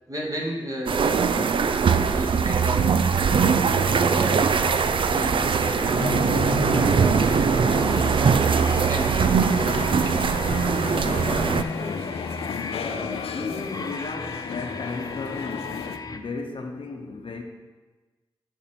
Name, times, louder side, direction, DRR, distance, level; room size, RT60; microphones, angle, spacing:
voice 1, 0.1-2.9 3.2-4.6 4.8-8.4 8.9-10.3 10.8-11.9 12.6-13.6, right 1 dB, 35° right, -1 dB, 1.9 m, -35 dB
sound 1, 0.9-11.6, right 6 dB, 60° right, 0.4 m, -21 dB
sound 2, 5.8-16.0, left 7 dB, 85° left, 0.4 m, -36 dB
sound 3, 6.0-16.2, left 4 dB, 40° left, 0.6 m, -34 dB
voice 2, 11.0-12.2 13.3-17.4, left 3 dB, 65° left, 3 dB, 0.9 m, -35 dB
6.8 x 3.6 x 5.9 m, 1.2 s
cardioid pair, 40°, 10 cm